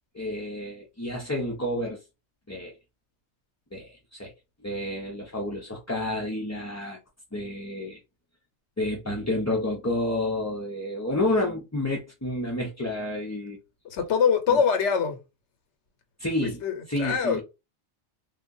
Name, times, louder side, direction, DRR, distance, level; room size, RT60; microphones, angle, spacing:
voice 1, 0.1-2.0 2.5-2.7 3.7-4.3 4.6-7.0 7.3-8.0 8.8-13.6 14.5-14.6 16.2-16.6 16.9-17.4, left 1 dB, 20° left, 0.6 m, -30 dB
voice 2, 13.8-15.2 16.4-17.4, left 6 dB, 85° left, 1.1 m, -24 dB
3.7 x 2.3 x 2.6 m
omnidirectional pair, 1.2 m